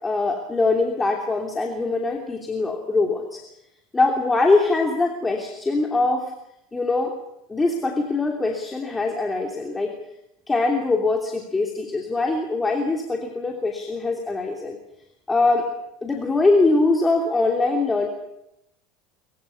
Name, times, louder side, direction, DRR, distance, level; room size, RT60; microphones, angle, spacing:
voice 1, 0.0-3.4 3.9-6.2 6.7-7.1 7.5-9.9 10.5-14.8 15.3-15.7 16.0-18.1, left 3 dB, 15° left, 1 dB, 3.0 m, -22 dB
23.5 x 22.0 x 7.1 m, 0.83 s
supercardioid pair, 135°, 0 cm